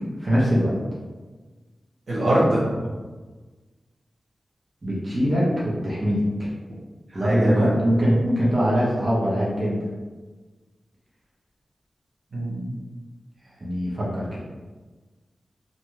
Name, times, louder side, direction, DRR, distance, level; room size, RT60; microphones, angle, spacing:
voice 1, 0.2-0.7 4.8-6.5 7.1-9.8 13.6-14.4, equal, 35° right, -7 dB, 0.7 m, -22 dB
voice 2, 2.1-2.8 7.1-7.7 12.3-12.7, right 1 dB, 75° right, -8 dB, 1.1 m, -23 dB
2.6 x 2.3 x 3.0 m, 1.3 s
wide cardioid pair, 110°, 0 cm